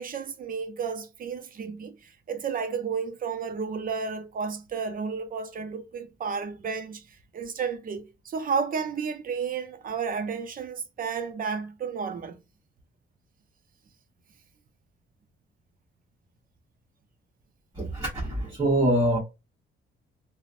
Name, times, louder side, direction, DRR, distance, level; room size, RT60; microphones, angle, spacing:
voice 1, 0.0-12.4, right 6 dB, 45° right, 0.5 m, -32 dB
voice 2, 17.7-19.2, right 1 dB, 20° right, 1.0 m, -24 dB
3.0 x 2.0 x 2.5 m
cardioid pair, 90°, 20 cm